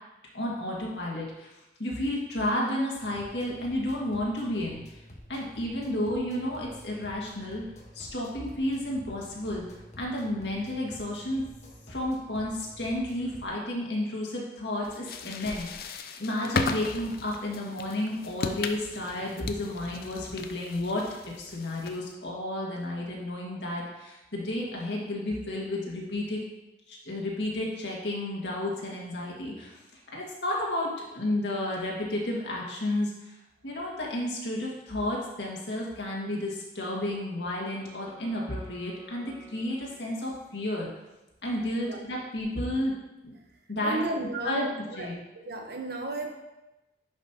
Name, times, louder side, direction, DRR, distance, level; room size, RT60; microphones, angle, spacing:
voice 1, 0.3-1.5 1.8-5.0 5.3-7.6 7.9-9.6 10.0-11.4 11.9-21.0 21.4-26.4 26.9-33.3 33.6-40.9 41.4-42.9 43.2-43.3 43.7-44.0 44.5-44.7 45.0-45.1, left 1 dB, 80° left, -3 dB, 1.8 m, -32 dB
sound 1, 2.9-13.5, equal, 40° left, 1.3 m, -49 dB
sound 2, 14.8-22.1, left 4 dB, 55° left, 0.5 m, -36 dB
Wind instrument woodwind instrument, 36.6-40.6, left 1 dB, 15° right, 2.1 m, -54 dB
voice 2, 43.8-45.2 45.4-46.3, right 2 dB, 60° right, 3 dB, 1.0 m, -33 dB
10.5 x 5.3 x 2.9 m, 1.0 s
head